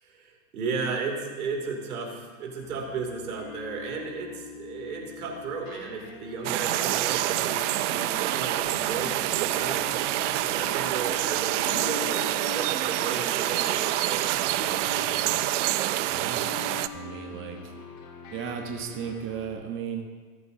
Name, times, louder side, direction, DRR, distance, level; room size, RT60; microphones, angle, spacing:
voice 1, 0.0-9.9 10.3-14.4, right 4 dB, 85° right, 0 dB, 3.0 m, -35 dB
sound 1, 2.6-19.5, left 6 dB, 55° left, 2.8 m, -44 dB
sound 2, 6.4-16.9, right 14 dB, 55° right, 0.6 m, -27 dB
voice 2, 16.1-16.5 16.9-17.7 18.3-20.2, right 7 dB, 30° right, 2 dB, 1.2 m, -35 dB
24.5 x 8.3 x 2.8 m, 1.4 s
hypercardioid pair, 120°, 43 cm